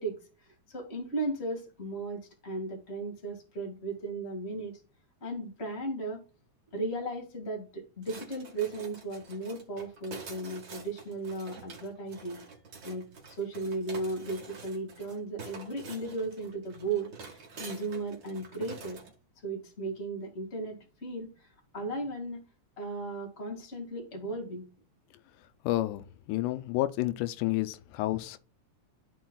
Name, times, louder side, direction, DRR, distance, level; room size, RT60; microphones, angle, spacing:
voice 1, 0.0-4.7 5.2-6.2 6.7-12.4 12.8-19.0 19.4-22.4 22.8-24.6, right 2 dB, 25° left, 1.9 m, -36 dB
sound 1, 8.0-19.1, right 4 dB, 45° right, 1.8 m, -47 dB
voice 2, 25.6-28.4, left 16 dB, 90° left, 2.1 m, -30 dB
13.5 x 4.6 x 2.3 m
omnidirectional pair, 3.4 m